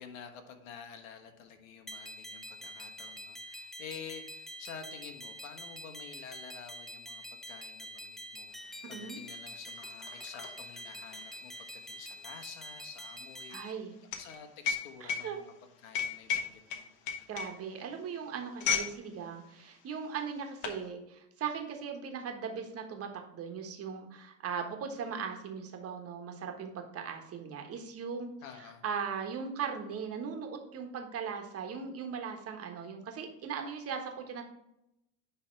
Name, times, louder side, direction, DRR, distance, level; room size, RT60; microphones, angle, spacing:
voice 1, 0.0-13.8 14.1-15.5 15.8-17.3 28.4-28.8, left 7 dB, 80° left, 6 dB, 1.3 m, -49 dB
sound 1, 1.9-13.7, equal, ahead, 0.3 m, -46 dB
sound 2, 8.6-8.7 9.0-19.0 19.3-19.5 20.2-20.8, left 7 dB, 60° left, 1.4 m, -36 dB
voice 2, 8.8-9.2 13.5-13.9 15.0-15.4 17.3-28.3 28.6-34.4, right 6 dB, 35° right, 4 dB, 1.4 m, -39 dB
9.7 x 3.4 x 4.5 m, 0.84 s
supercardioid pair, 110°, 40 cm